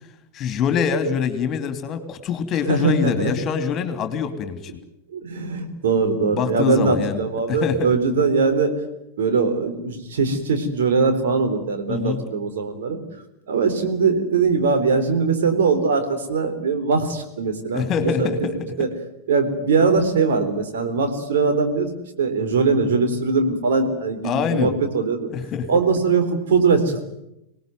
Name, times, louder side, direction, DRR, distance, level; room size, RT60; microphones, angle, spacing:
voice 1, 0.3-4.7 6.3-7.2 7.5-7.9 11.9-12.2 17.7-18.9 24.2-24.8 25.3-25.7, left 6 dB, 30° left, 10 dB, 3.0 m, -24 dB
voice 2, 2.7-3.3 5.1-8.7 9.2-13.0 13.5-18.3 18.8-18.9 19.3-21.9 22.2-25.3 25.7-27.1, right 4 dB, 60° right, 6 dB, 3.9 m, -21 dB
26.0 x 19.0 x 9.3 m, 0.85 s
figure-of-eight pair, 90°, 0 cm